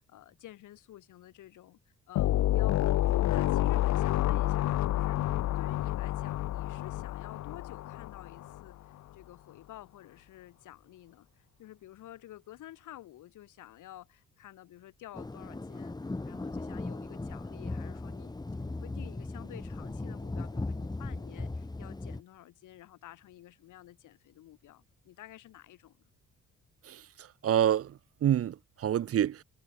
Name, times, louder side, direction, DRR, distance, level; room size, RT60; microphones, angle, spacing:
voice 1, 0.0-1.8 2.1-2.8 3.1-15.9 16.2-26.0, left 14 dB, 80° left, 4.7 m, -51 dB
sound 1, 2.2-8.6, left 14 dB, 65° left, 0.7 m, -29 dB
sound 2, 15.1-22.2, left 2 dB, 15° left, 1.3 m, -38 dB
voice 2, 26.8-29.4, right 10 dB, 50° right, 0.7 m, -28 dB
cardioid pair, 90°, 30 cm